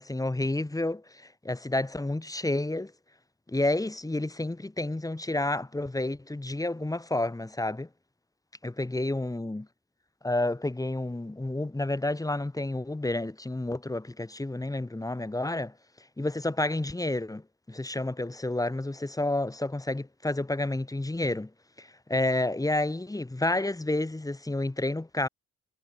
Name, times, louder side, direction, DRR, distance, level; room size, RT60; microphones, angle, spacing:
voice 1, 0.0-2.9 3.5-7.9 8.6-9.7 10.2-15.7 16.2-21.5 21.8-25.3, left 2 dB, 10° left, 1.7 m, -30 dB
cardioid pair, 105°, 31 cm